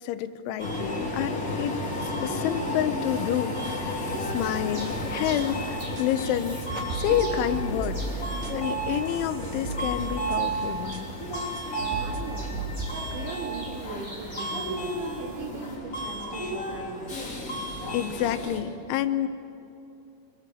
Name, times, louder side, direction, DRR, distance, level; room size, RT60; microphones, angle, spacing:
voice 1, 0.0-6.6 6.9-8.0 8.5-11.1 17.9-19.3, left 11 dB, 90° left, 11 dB, 3.3 m, -29 dB
Subway metro underground, 0.6-18.6, equal, 30° left, 1.8 m, -32 dB
sound 1, 4.4-15.8, right 1 dB, 15° right, 1.5 m, -43 dB
sound 2, 5.1-5.6 6.0-6.1 6.6-8.8 9.1-10.6 10.9-11.0 11.6-11.7 11.9-13.3, right 3 dB, 85° right, 4.5 m, -36 dB
voice 2, 11.8-17.1, right 4 dB, 70° right, 0 dB, 4.8 m, -39 dB
26.5 x 21.0 x 7.6 m, 2.7 s
omnidirectional pair, 5.3 m